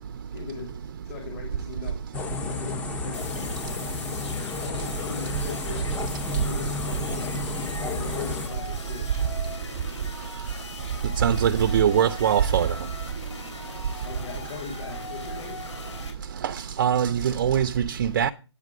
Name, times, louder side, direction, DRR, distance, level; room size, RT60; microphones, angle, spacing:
voice 1, 0.3-0.7 1.0-2.0 2.4-3.9 4.6-5.9 6.3-7.4 7.9-9.1 14.0-15.6, left 5 dB, 30° left, 2.6 m, -39 dB
sound 1, 2.1-8.5, left 4 dB, 10° left, 0.7 m, -32 dB
sound 2, 3.1-16.1, left 3 dB, 80° left, 3.7 m, -41 dB
voice 2, 11.2-12.7 16.4-18.3, right 8 dB, 40° right, 0.5 m, -22 dB
9.3 x 8.3 x 4.8 m
hypercardioid pair, 155°, 15 cm